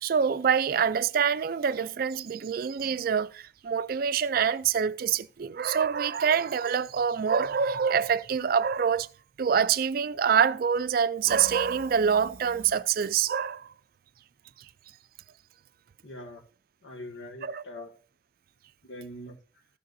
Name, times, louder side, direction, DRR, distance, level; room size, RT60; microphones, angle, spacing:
voice 1, 0.0-9.1 9.4-13.7 17.4-17.6, right 7 dB, 50° right, 0.3 m, -26 dB
voice 2, 16.0-16.4 16.8-17.9 18.8-19.4, left 1 dB, 85° left, 1.7 m, -42 dB
15.0 x 6.6 x 2.6 m
head